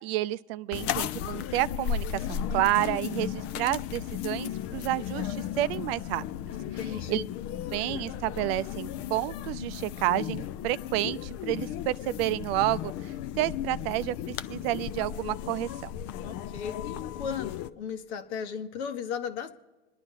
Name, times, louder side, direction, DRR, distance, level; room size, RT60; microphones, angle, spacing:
voice 1, 0.0-6.2 7.1-7.2 7.7-15.9, right 16 dB, 60° right, 0.5 m, -30 dB
sound 1, 0.7-17.7, left 10 dB, 45° left, 0.6 m, -35 dB
voice 2, 6.6-7.3 16.2-19.5, left 7 dB, 75° left, 1.3 m, -36 dB
26.5 x 10.0 x 3.7 m
hypercardioid pair, 110°, 34 cm